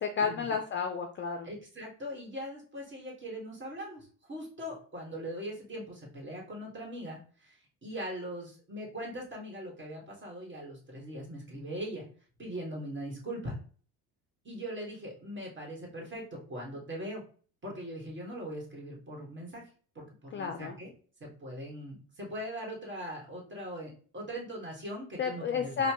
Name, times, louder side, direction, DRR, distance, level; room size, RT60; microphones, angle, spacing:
voice 1, 0.0-1.5 20.3-20.8 25.2-25.9, left 6 dB, 30° left, 4 dB, 0.4 m, -31 dB
voice 2, 1.4-12.1 12.4-13.6 14.4-17.2 17.6-19.6 19.9-20.9 21.2-25.9, equal, 30° right, -1 dB, 1.6 m, -41 dB
4.3 x 2.2 x 2.9 m, 0.42 s
cardioid pair, 115°, 39 cm